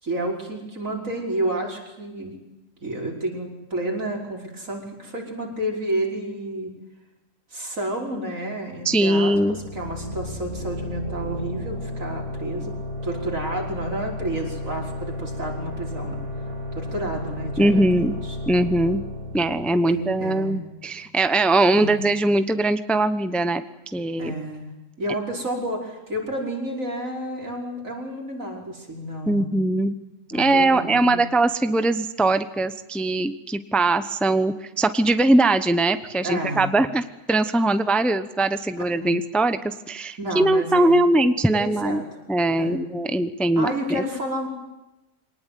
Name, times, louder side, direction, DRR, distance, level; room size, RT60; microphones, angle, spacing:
voice 1, 0.0-2.3 2.8-6.7 7.5-12.8 13.0-16.2 16.7-18.4 19.8-20.6 21.7-22.0 24.2-24.7 25.0-29.6 30.3-31.2 36.2-36.7 39.0-39.1 40.2-41.2 41.5-42.1 42.6-42.8 43.6-44.5, right 1 dB, 80° right, 0 dB, 5.8 m, -30 dB
voice 2, 8.8-9.6 17.6-18.2 18.5-19.0 19.3-23.6 23.9-24.3 29.3-30.0 30.3-42.0 42.3-44.0, right 2 dB, ahead, 11 dB, 0.8 m, -21 dB
sound 1, 9.3-20.7, left 1 dB, 25° right, 4.0 m, -33 dB
24.5 x 19.0 x 9.4 m, 0.98 s
omnidirectional pair, 1.4 m